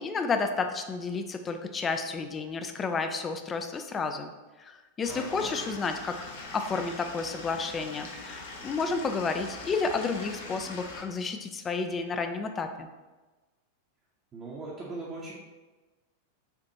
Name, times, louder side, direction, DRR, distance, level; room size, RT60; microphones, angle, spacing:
voice 1, 0.0-4.3 4.6-6.3 6.5-12.9, left 4 dB, 20° left, 7 dB, 0.4 m, -31 dB
Stream / Liquid, 5.0-11.0, left 3 dB, 60° left, 0.7 m, -42 dB
voice 2, 5.1-5.7 14.3-15.3, right 3 dB, 25° right, -6 dB, 0.8 m, -40 dB
6.7 x 2.5 x 2.9 m, 1.2 s
figure-of-eight pair, 90°, 0 cm